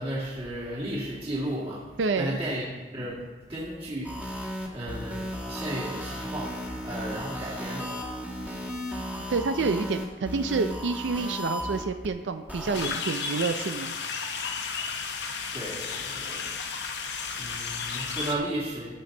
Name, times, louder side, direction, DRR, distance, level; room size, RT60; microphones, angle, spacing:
voice 1, 0.0-6.6 6.8-7.9 15.5-16.6 17.4-18.9, right 1 dB, 35° right, -8 dB, 2.1 m, -34 dB
voice 2, 2.0-2.4 9.3-14.0, right 4 dB, 90° right, 9 dB, 0.5 m, -28 dB
sound 1, 4.0-12.1 12.5-12.9, equal, 10° right, 1.5 m, -35 dB
sound 2, 12.7-18.3, left 5 dB, 65° left, 0.9 m, -33 dB
15.5 x 5.4 x 3.9 m, 1.4 s
head